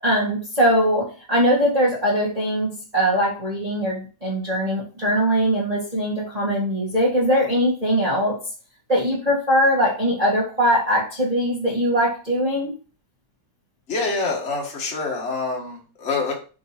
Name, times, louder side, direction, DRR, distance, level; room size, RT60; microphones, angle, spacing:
voice 1, 0.0-8.4 8.9-12.7, equal, 20° right, -5 dB, 1.9 m, -21 dB
voice 2, 13.9-16.3, left 3 dB, 40° left, -1 dB, 2.0 m, -26 dB
7.4 x 3.9 x 4.4 m, 0.37 s
omnidirectional pair, 2.0 m